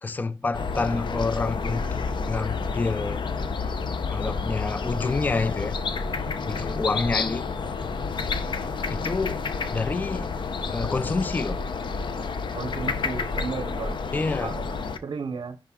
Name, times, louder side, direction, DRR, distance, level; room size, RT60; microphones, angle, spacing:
voice 1, 0.0-3.2 4.1-5.8 6.4-7.5 8.9-10.3 10.7-11.6 14.1-14.5, left 3 dB, 20° left, 0.4 m, -28 dB
sound 1, 0.5-15.0, left 4 dB, 70° left, 0.7 m, -30 dB
voice 2, 12.5-14.0 14.3-14.6 15.0-15.6, right 5 dB, 60° right, 0.7 m, -34 dB
10.0 x 4.6 x 3.6 m
wide cardioid pair, 175°, 8 cm